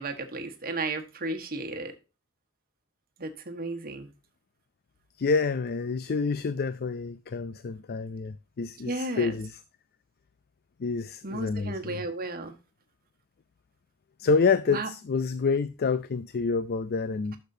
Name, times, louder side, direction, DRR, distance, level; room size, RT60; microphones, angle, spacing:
voice 1, 0.0-1.9 3.2-4.1 8.8-9.3 11.2-12.5 14.7-14.9, right 2 dB, 45° right, 1.4 m, -34 dB
voice 2, 5.2-9.6 10.8-12.0 14.2-17.4, left 4 dB, 45° left, 0.4 m, -28 dB
11.5 x 6.7 x 2.7 m
head